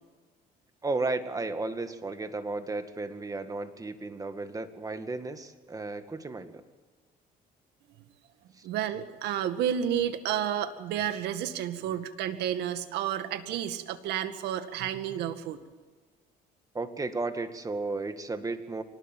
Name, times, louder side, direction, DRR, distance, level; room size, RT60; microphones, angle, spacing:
voice 1, 0.8-6.6 16.7-18.8, right 3 dB, 20° right, 8 dB, 2.1 m, -34 dB
voice 2, 8.6-15.6, right 10 dB, 85° right, 9 dB, 2.0 m, -31 dB
24.5 x 19.5 x 9.2 m, 1.3 s
cardioid pair, 110°, 17 cm